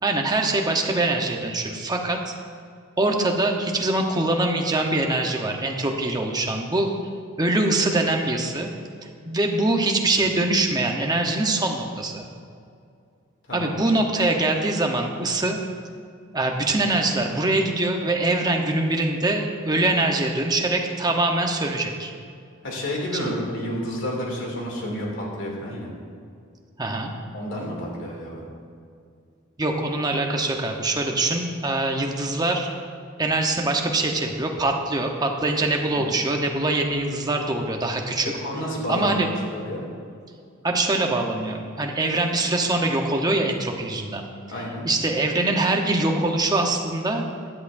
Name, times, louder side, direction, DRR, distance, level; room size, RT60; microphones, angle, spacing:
voice 1, 0.0-2.2 3.0-6.9 7.4-8.7 9.2-12.2 13.5-15.6 16.3-22.1 23.1-23.4 26.8-27.1 29.6-32.7 33.2-38.3 38.9-39.3 40.6-44.2 44.8-47.2, right 2 dB, 20° right, 2 dB, 1.0 m, -23 dB
voice 2, 22.6-25.9 27.3-28.4 35.8-36.1 38.2-39.8 44.5-44.9, equal, 60° left, -2 dB, 2.7 m, -30 dB
15.5 x 11.0 x 2.7 m, 2.4 s
head